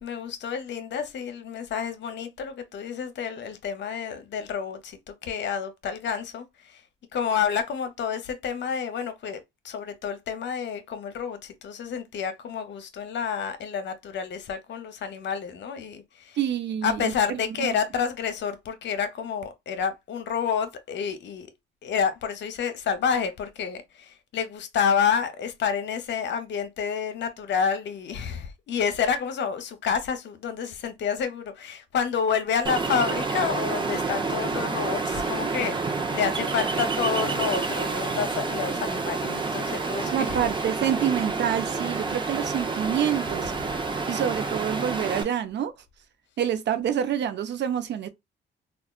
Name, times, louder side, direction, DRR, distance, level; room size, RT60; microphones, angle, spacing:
voice 1, 0.0-6.8 7.1-16.4 16.8-21.5 21.8-40.4, left 7 dB, 65° left, 0.8 m, -29 dB
voice 2, 16.4-17.8 40.1-43.5 44.1-45.7 46.4-48.1, right 9 dB, 60° right, 0.6 m, -27 dB
Ocean, 32.6-45.2, right 4 dB, 25° right, 0.7 m, -29 dB
3.5 x 2.4 x 2.3 m
cardioid pair, 90°, 20 cm